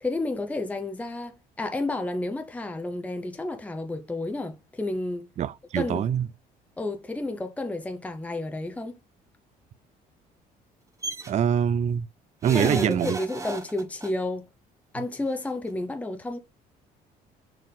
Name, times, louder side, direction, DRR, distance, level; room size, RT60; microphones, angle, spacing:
voice 1, 0.0-5.3 5.8-6.1 6.8-8.9 12.5-14.5 14.9-16.4, left 2 dB, 10° left, 0.8 m, -31 dB
voice 2, 5.4-6.3 11.3-12.1 12.4-13.2 15.0-15.1, right 9 dB, 45° right, 0.5 m, -24 dB
sound 1, 11.0-11.3 12.4-14.1 15.3-15.4 15.7-15.8, right 3 dB, 20° right, 1.3 m, -35 dB
6.6 x 4.1 x 4.1 m
cardioid pair, 110°, 17 cm